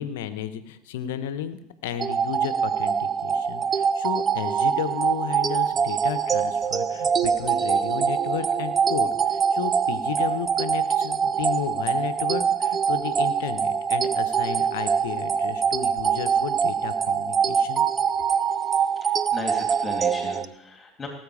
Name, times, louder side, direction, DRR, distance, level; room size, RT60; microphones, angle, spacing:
voice 1, 0.0-17.8, left 10 dB, 75° left, 12 dB, 1.0 m, -33 dB
sound 1, 2.0-20.4, right 7 dB, 35° right, 0.6 m, -24 dB
voice 2, 19.0-21.1, left 3 dB, 25° left, 2 dB, 2.8 m, -36 dB
18.0 x 8.0 x 4.9 m, 0.83 s
hypercardioid pair, 75°, 0 cm